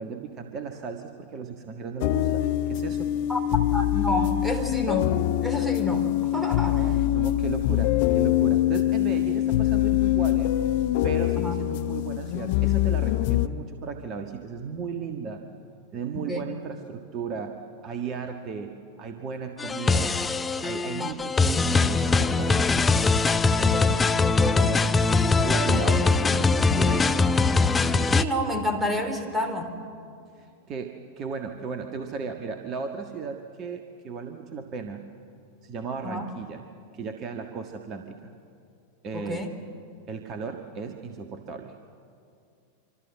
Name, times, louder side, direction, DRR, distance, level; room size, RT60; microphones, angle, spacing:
voice 1, 0.0-3.1 6.6-10.5 11.0-15.5 15.9-17.6 17.8-20.2 20.6-22.7 24.6-24.9 25.4-27.2 30.4-35.0 35.6-36.6 36.9-38.3 39.0-39.5 40.1-41.7, right 5 dB, 35° right, 5 dB, 1.6 m, -35 dB
sound 1, 2.0-13.5, left 14 dB, 50° left, 0.8 m, -24 dB
voice 2, 3.7-6.9 11.4-11.6 16.1-16.4 20.9-21.1 23.6-24.7 25.7-25.8 28.1-29.7 36.0-36.2 39.1-39.5, left 1 dB, 5° right, 6 dB, 3.2 m, -29 dB
sound 2, 19.6-28.2, left 4 dB, 15° left, 0.7 m, -22 dB
26.0 x 25.5 x 7.6 m, 2.4 s
figure-of-eight pair, 90°, 0 cm